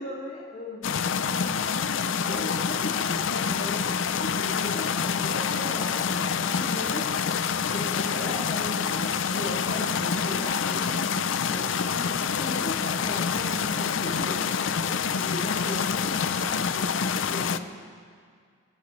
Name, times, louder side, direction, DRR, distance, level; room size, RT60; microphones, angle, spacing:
voice 1, 0.0-1.6 2.0-17.7, left 1 dB, 50° left, -8 dB, 2.4 m, -37 dB
sound 1, 0.8-17.6, left 6 dB, 70° left, 0.5 m, -27 dB
25.5 x 14.0 x 3.2 m, 2.1 s
head